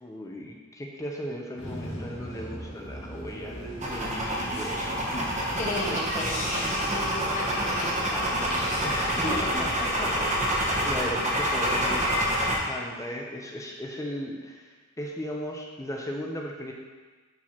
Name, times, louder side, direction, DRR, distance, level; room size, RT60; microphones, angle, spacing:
voice 1, 0.0-4.9 5.9-6.0 8.8-9.1 9.5-10.1 10.4-12.3 12.6-16.7, equal, 15° left, 0 dB, 0.6 m, -37 dB
Bus / Engine, 1.6-9.6, equal, 85° left, 1.8 m, -40 dB
sound 1, 3.8-12.6, equal, 35° right, 1.2 m, -27 dB
voice 2, 5.6-8.8 9.2-9.3, left 1 dB, 35° left, -4 dB, 1.4 m, -34 dB
10.0 x 4.6 x 2.9 m, 1.3 s
head